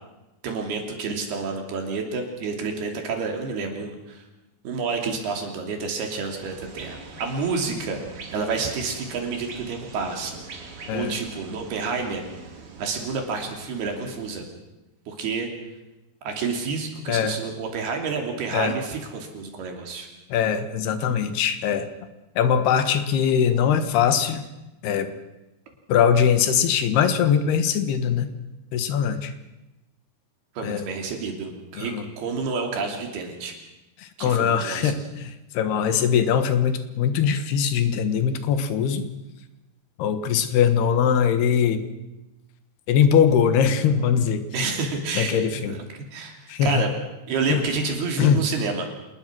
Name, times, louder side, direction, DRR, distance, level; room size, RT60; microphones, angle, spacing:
voice 1, 0.4-4.2 4.6-12.2 12.8-14.5 15.1-15.5 16.2-20.1 30.6-33.6 34.2-35.0 44.5-45.8 46.1-46.9 47.3-48.9, right 4 dB, 75° right, 3 dB, 4.9 m, -29 dB
sound 1, 6.3-14.4, right 4 dB, 40° right, 3.0 m, -43 dB
voice 2, 10.9-11.2 17.1-17.4 18.5-18.7 20.3-21.9 22.4-24.4 24.8-25.1 25.9-28.3 28.7-29.3 30.6-30.9 31.8-32.0 34.0-39.0 40.0-41.8 42.9-44.4 45.1-45.8 46.5-46.8 47.5-47.6 48.2-48.4, left 8 dB, 80° left, 10 dB, 3.4 m, -21 dB
27.0 x 20.5 x 6.2 m, 0.99 s
omnidirectional pair, 4.6 m